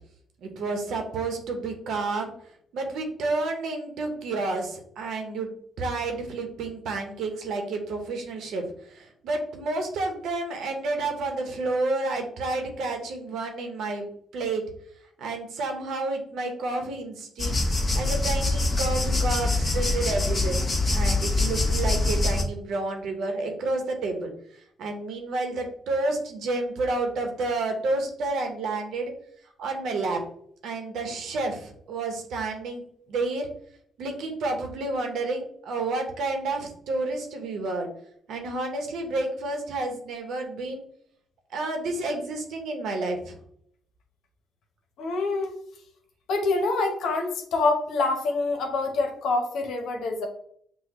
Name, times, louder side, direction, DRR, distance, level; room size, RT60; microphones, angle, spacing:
voice 1, 0.4-2.3 2.7-5.5 5.8-14.6 15.2-17.6 17.9-20.6 20.9-29.1 29.6-30.2 30.6-33.5 34.0-37.9 38.3-40.8 41.5-43.4, right 2 dB, 75° right, 4 dB, 1.0 m, -30 dB
sound 1, 17.4-22.4, left 2 dB, 30° left, 1.2 m, -24 dB
voice 2, 45.0-45.5 46.3-50.3, left 3 dB, 80° left, 3 dB, 0.9 m, -26 dB
6.2 x 2.3 x 3.0 m, 0.66 s
cardioid pair, 90°, 0 cm